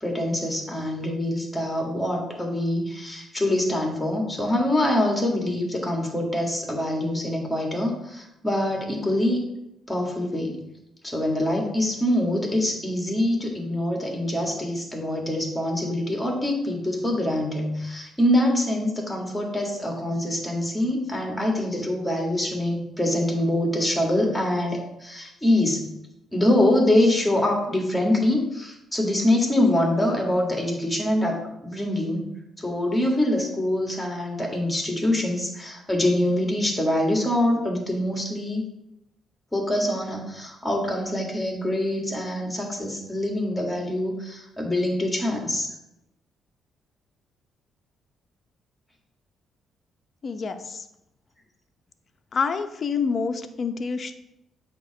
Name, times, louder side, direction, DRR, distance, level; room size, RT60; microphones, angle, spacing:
voice 1, 0.0-9.4 9.9-10.6 11.0-25.8 26.3-32.2 32.6-38.6 39.5-45.7, left 1 dB, 10° left, 0 dB, 1.9 m, -24 dB
voice 2, 50.2-50.8 52.3-54.2, left 5 dB, 45° left, 7 dB, 0.7 m, -27 dB
8.2 x 3.0 x 6.0 m, 0.85 s
cardioid pair, 90°, 0 cm